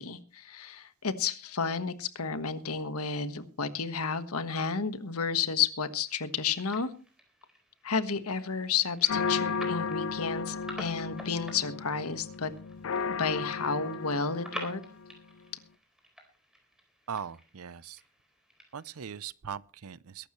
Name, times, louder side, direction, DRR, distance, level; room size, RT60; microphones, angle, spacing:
voice 1, 0.0-6.9 7.8-12.5 13.2-14.8, left 6 dB, 85° left, 1.4 m, -31 dB
sound 1, 6.1-19.3, equal, 5° right, 4.1 m, -49 dB
Gothic church bells, 9.1-15.2, left 5 dB, 65° left, 0.6 m, -34 dB
voice 2, 17.1-18.0 18.7-20.3, right 7 dB, 75° right, 0.6 m, -40 dB
22.0 x 12.0 x 3.1 m
head